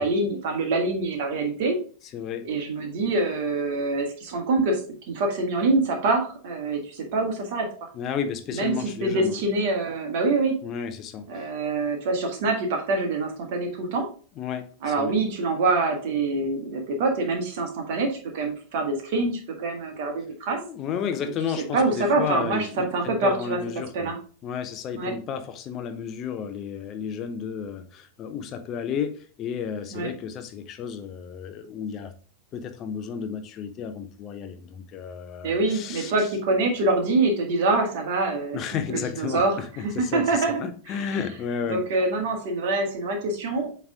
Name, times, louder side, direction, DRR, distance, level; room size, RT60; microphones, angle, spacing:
voice 1, 0.0-1.7 2.4-4.8 5.1-7.9 8.5-10.6 11.3-14.1 14.8-20.6 21.7-23.6 23.9-24.2 24.9-25.1 29.9-30.1 35.4-38.6 38.9-40.6 41.0-41.1 41.7-43.7, right 3 dB, 50° right, 1.6 m, -25 dB
voice 2, 2.1-2.5 7.9-9.4 10.6-11.3 14.4-15.1 20.5-24.1 24.4-32.1 32.5-36.1 38.5-41.8, left 7 dB, 35° left, 0.7 m, -32 dB
8.0 x 3.5 x 3.6 m
figure-of-eight pair, 90°, 0 cm